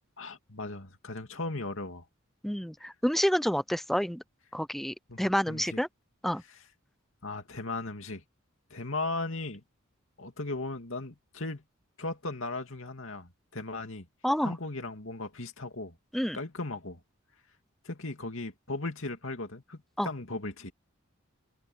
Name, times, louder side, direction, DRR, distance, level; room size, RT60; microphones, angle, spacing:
voice 1, 0.2-2.0 5.1-5.8 7.2-8.2 8.7-9.6 10.2-11.6 12.0-14.1 14.4-15.9 16.3-17.0 17.8-20.7, left 2 dB, 65° left, 2.8 m, -37 dB
voice 2, 2.4-4.2 4.5-5.9 6.2-6.4 14.2-14.5 16.1-16.4 20.0-20.1, equal, ahead, 0.4 m, -28 dB
open air
head